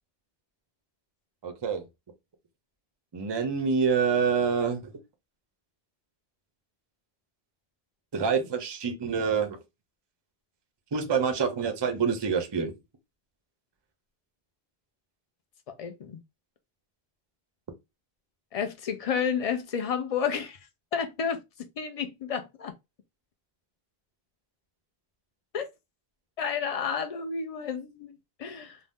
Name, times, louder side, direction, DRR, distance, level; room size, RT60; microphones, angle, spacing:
voice 1, 1.4-1.9 3.1-4.9 8.1-9.6 10.9-12.7, right 6 dB, 35° right, 0.4 m, -26 dB
voice 2, 15.8-16.2 18.5-20.6 20.9-21.4 21.8-22.7 25.5-25.6 26.4-28.8, left 7 dB, 60° left, 0.4 m, -31 dB
2.6 x 2.0 x 3.4 m
omnidirectional pair, 1.1 m